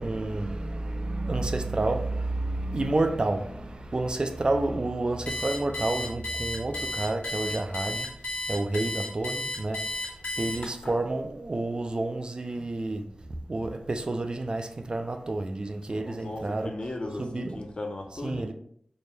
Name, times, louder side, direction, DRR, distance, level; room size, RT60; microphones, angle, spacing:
voice 1, 0.0-8.1 8.5-9.8 10.4-13.1 13.5-16.7 17.2-17.6 18.2-18.5, right 2 dB, 40° right, 0.3 m, -29 dB
Alarm, 5.3-10.9, left 1 dB, 80° left, 1.3 m, -33 dB
voice 2, 15.9-18.5, left 2 dB, 45° left, 0.6 m, -37 dB
4.3 x 2.2 x 3.2 m
wide cardioid pair, 85°, 2 cm